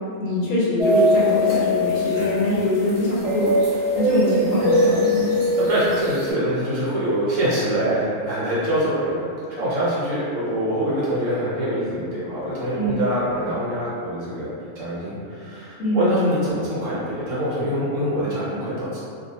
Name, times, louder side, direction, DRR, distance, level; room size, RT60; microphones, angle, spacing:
voice 1, 0.2-3.5 4.0-5.4 12.7-13.0 15.8-16.1, left 1 dB, 70° left, -7 dB, 1.0 m, -22 dB
sound 1, 0.8-6.3, left 1 dB, 45° right, 1.0 m, -22 dB
voice 2, 5.6-19.0, equal, 65° right, -9 dB, 1.2 m, -24 dB
2.6 x 2.4 x 2.8 m, 2.5 s
omnidirectional pair, 1.5 m